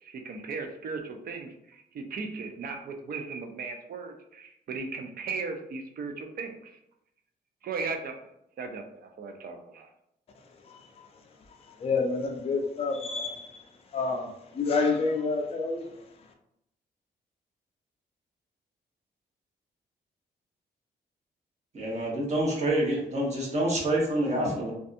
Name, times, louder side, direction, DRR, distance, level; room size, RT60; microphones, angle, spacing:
voice 1, 0.0-6.8 7.6-8.2 8.6-9.9, right 4 dB, 60° right, 4 dB, 0.5 m, -37 dB
voice 2, 11.8-13.5 13.9-15.8, left 4 dB, 35° left, 3 dB, 0.4 m, -28 dB
voice 3, 21.7-24.7, right 1 dB, 40° right, -4 dB, 1.0 m, -27 dB
2.6 x 2.3 x 2.5 m, 0.79 s
cardioid pair, 100°, 18 cm